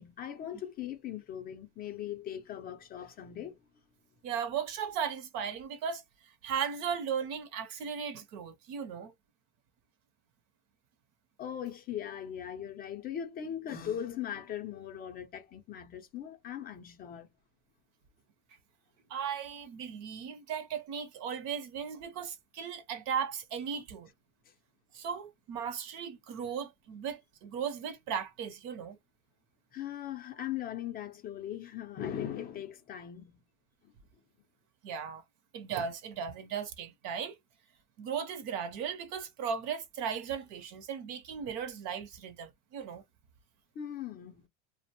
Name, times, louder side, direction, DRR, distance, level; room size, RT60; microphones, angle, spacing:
voice 1, 0.0-3.6 11.4-17.3 29.7-33.4 33.8-33.9 43.8-44.5, left 10 dB, 25° left, 0.5 m, -39 dB
voice 2, 4.2-9.1 19.1-24.1 24.9-29.0 34.8-35.2 35.5-37.4 38.0-43.0, right 7 dB, 50° right, 0.7 m, -37 dB
2.5 x 2.1 x 2.8 m
supercardioid pair, 150°, 36 cm